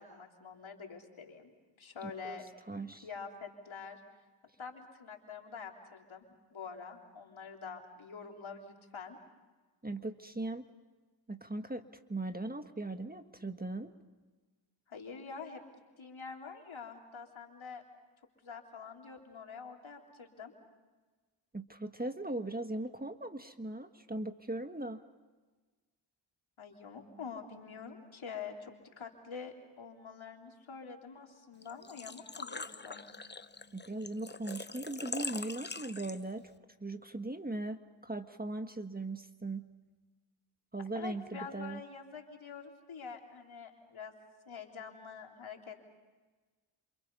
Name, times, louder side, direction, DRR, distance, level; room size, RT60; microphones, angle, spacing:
voice 1, 0.0-2.5 3.0-4.0 4.6-9.2 14.9-15.6 16.0-17.8 18.4-20.5 26.6-33.0 41.0-44.2 44.5-45.9, left 5 dB, 70° left, 2 dB, 3.7 m, -46 dB
voice 2, 2.0-3.1 9.8-10.6 11.3-11.8 12.1-13.9 21.5-25.0 33.7-36.4 36.8-39.7 40.7-41.8, right 2 dB, 20° right, 8 dB, 1.6 m, -39 dB
Engine / Trickle dribble / Fill (with liquid), 31.6-36.5, left 4 dB, 20° left, 0.9 m, -43 dB
28.5 x 27.5 x 5.5 m, 1.3 s
cardioid pair, 50°, 49 cm